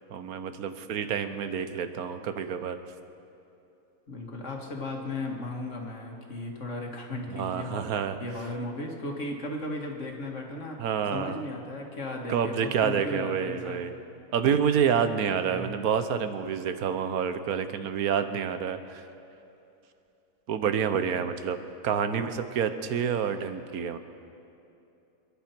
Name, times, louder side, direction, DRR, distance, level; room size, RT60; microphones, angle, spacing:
voice 1, 0.1-2.8 7.3-8.2 10.8-11.4 12.3-13.9 14.3-19.0 20.5-21.6 21.8-24.0, right 7 dB, 70° right, 9 dB, 1.3 m, -28 dB
voice 2, 4.1-10.8 11.1-13.8 15.4-15.7, left 2 dB, 50° left, 1 dB, 2.1 m, -36 dB
27.5 x 10.5 x 4.5 m, 2.8 s
omnidirectional pair, 1.7 m